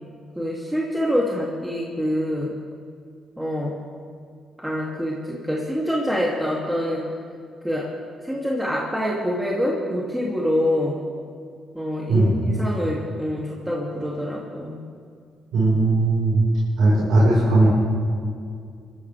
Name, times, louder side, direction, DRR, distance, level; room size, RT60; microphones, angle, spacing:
voice 1, 0.4-2.5 3.4-3.8 4.6-7.0 7.6-7.9 8.2-11.0 11.7-14.8, equal, 5° right, -5 dB, 2.6 m, -25 dB
voice 2, 15.5-16.4 16.8-17.7, right 2 dB, 85° right, -6 dB, 4.6 m, -18 dB
26.5 x 14.0 x 3.4 m, 2.2 s
cardioid pair, 90°, 0 cm